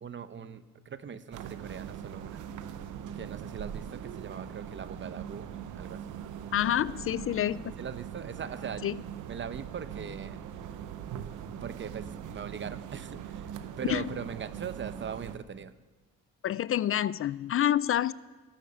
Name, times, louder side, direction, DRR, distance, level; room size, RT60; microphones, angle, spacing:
voice 1, 0.0-2.4 3.1-6.0 7.8-8.9 9.3-10.4 11.6-13.5 13.8-15.7, right 7 dB, 40° right, 13 dB, 0.9 m, -40 dB
sound 1, 1.3-15.4, right 9 dB, 80° right, 1.0 m, -41 dB
voice 2, 6.5-7.8 8.8-9.0 13.9-14.0 16.4-18.1, left 11 dB, 45° left, 19 dB, 0.4 m, -28 dB
18.0 x 11.5 x 6.9 m, 1.3 s
cardioid pair, 90°, 30 cm